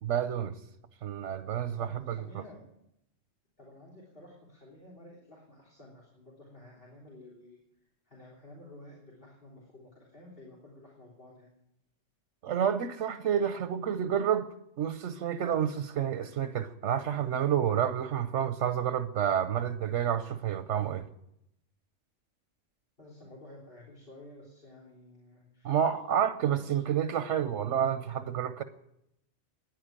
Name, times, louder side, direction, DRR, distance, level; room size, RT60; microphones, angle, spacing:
voice 1, 0.0-0.6 1.0-2.2 12.4-21.1 25.6-28.6, right 9 dB, 90° right, 1.1 m, -29 dB
voice 2, 1.8-2.6 3.6-7.6 8.1-11.5 23.0-25.8 26.6-26.8, left 1 dB, 50° left, 3.6 m, -52 dB
15.0 x 10.5 x 8.9 m
omnidirectional pair, 1.2 m